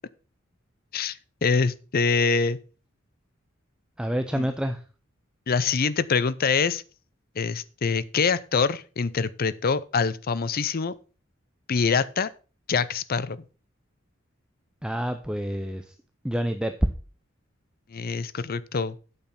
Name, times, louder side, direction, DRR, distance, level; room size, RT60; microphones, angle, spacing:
voice 1, 0.9-2.6 4.3-4.5 5.5-6.8 7.4-10.9 11.7-12.3 12.7-13.4 17.9-19.0, left 5 dB, 50° left, 0.6 m, -25 dB
voice 2, 4.0-4.8 14.8-15.9 16.2-16.7, equal, 5° right, 0.6 m, -28 dB
8.7 x 6.7 x 5.7 m
head